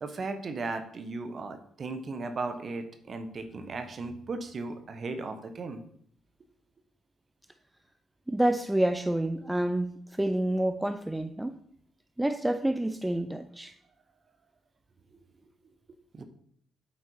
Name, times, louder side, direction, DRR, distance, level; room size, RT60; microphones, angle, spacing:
voice 1, 0.0-5.8 16.1-16.2, right 3 dB, 45° right, 8 dB, 1.0 m, -36 dB
voice 2, 8.3-11.6 12.2-13.7, right 1 dB, 10° right, 9 dB, 0.5 m, -28 dB
8.3 x 4.2 x 4.6 m, 0.64 s
cardioid pair, 90°, 0 cm